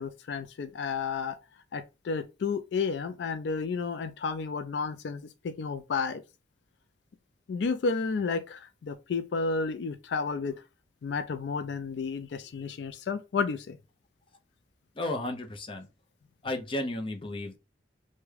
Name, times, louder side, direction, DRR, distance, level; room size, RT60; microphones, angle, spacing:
voice 1, 0.0-1.4 1.7-6.2 7.5-10.5 11.0-13.8, left 4 dB, 80° left, 0.4 m, -32 dB
voice 2, 15.0-15.9 16.4-17.6, left 1 dB, 30° left, 0.6 m, -33 dB
3.4 x 2.2 x 3.2 m
head